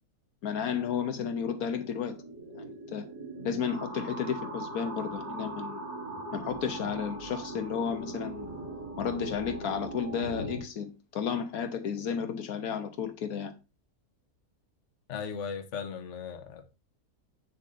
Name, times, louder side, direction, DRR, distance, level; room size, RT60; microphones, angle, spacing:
voice 1, 0.4-2.2 2.6-2.7 2.9-3.0 3.4-5.8 6.3-8.6 9.0-13.5, left 7 dB, 80° left, 1.3 m, -32 dB
sound 1, 1.0-10.6, right 2 dB, 85° right, 3.6 m, -40 dB
voice 2, 15.1-16.7, left 6 dB, 55° left, 1.2 m, -37 dB
7.7 x 6.7 x 2.6 m
omnidirectional pair, 1.5 m